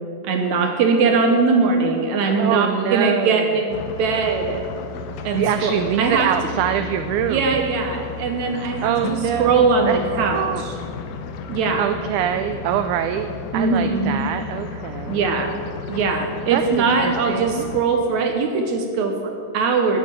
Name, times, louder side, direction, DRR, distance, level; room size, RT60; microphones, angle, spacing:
voice 1, 0.2-4.6 5.2-5.7 6.0-6.3 7.3-10.7 11.5-11.9 13.5-14.2 15.1-15.6 15.9-20.0, right 4 dB, 70° right, 4 dB, 1.9 m, -21 dB
voice 2, 2.3-3.5 5.3-7.6 8.8-10.0 10.3-10.6 11.8-15.3 16.5-17.7, right 10 dB, 85° right, 9 dB, 1.7 m, -24 dB
sound 1, 3.7-17.8, left 5 dB, 75° left, 1.9 m, -33 dB
9.6 x 8.2 x 8.7 m, 2.5 s
omnidirectional pair, 4.0 m